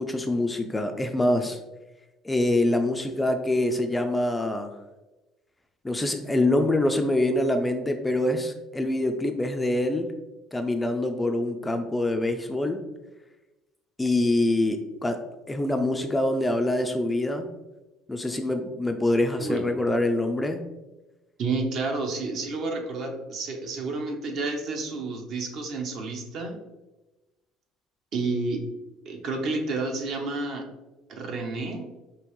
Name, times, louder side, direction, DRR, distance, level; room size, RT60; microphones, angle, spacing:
voice 1, 0.0-1.6 2.2-4.7 5.8-10.1 10.5-12.8 14.0-15.2 15.5-17.5 18.1-20.6, left 1 dB, 10° left, 6 dB, 0.3 m, -25 dB
voice 2, 21.4-26.6 28.1-28.6 29.1-30.7 31.1-31.8, right 3 dB, 55° right, 3 dB, 0.8 m, -30 dB
5.1 x 2.8 x 3.1 m, 1.1 s
cardioid pair, 135°, 0 cm